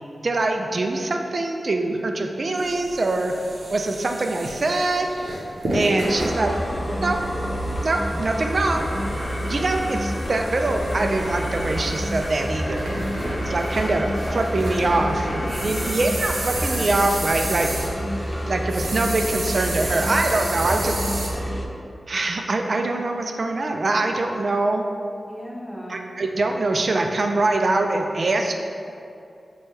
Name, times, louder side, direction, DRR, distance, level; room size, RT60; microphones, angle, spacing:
voice 1, 0.2-3.3 3.7-5.1 5.7-6.5 7.0-7.2 7.8-8.9 9.5-12.9 13.4-15.3 15.6-17.7 18.5-21.0 22.1-24.8 25.9-28.6, right 2 dB, 60° right, 4 dB, 0.3 m, -23 dB
sound 1, 2.6-21.3, right 1 dB, 75° right, 0.7 m, -33 dB
sound 2, 6.0-21.7, equal, 25° left, 0.4 m, -28 dB
voice 2, 6.0-6.5 14.3-14.5 15.0-16.0 25.3-26.0, equal, 5° right, -4 dB, 0.8 m, -36 dB
Alarm, 8.4-16.9, left 1 dB, 55° left, 0.8 m, -37 dB
3.1 x 2.2 x 4.2 m, 2.6 s
cardioid pair, 40°, 0 cm